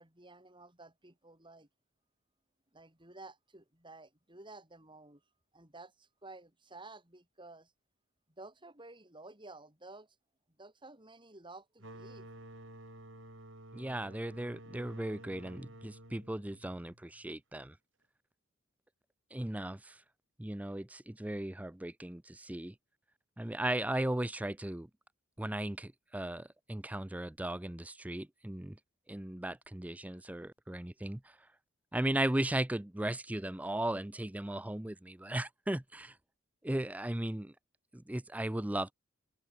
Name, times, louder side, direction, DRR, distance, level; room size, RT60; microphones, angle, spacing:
voice 1, 0.0-1.7 2.7-5.2 5.5-7.7 8.4-10.2 10.6-12.3, right 2 dB, 25° right, 7.9 m, -53 dB
sound 1, 11.8-17.2, right 1 dB, 65° right, 6.8 m, -52 dB
voice 2, 13.7-17.8 19.3-20.0 20.4-22.7 23.4-24.9 25.4-28.8 29.1-31.4 31.9-36.2 36.6-37.5 37.9-38.9, right 1 dB, 5° right, 0.5 m, -36 dB
open air
head